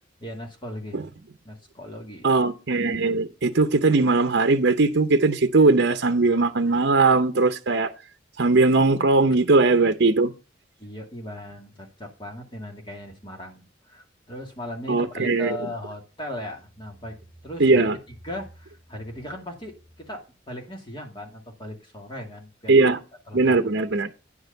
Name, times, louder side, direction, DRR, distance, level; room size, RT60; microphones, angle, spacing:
voice 1, 0.2-1.0 1.4-2.3 10.8-17.9 18.2-22.8 23.3-23.6, left 1 dB, 25° left, 2.2 m, -38 dB
voice 2, 2.2-7.9 8.4-10.3 14.9-15.6 17.6-18.0 22.7-23.0 23.3-24.1, right 3 dB, 60° right, 0.8 m, -19 dB
9.7 x 4.8 x 6.6 m
head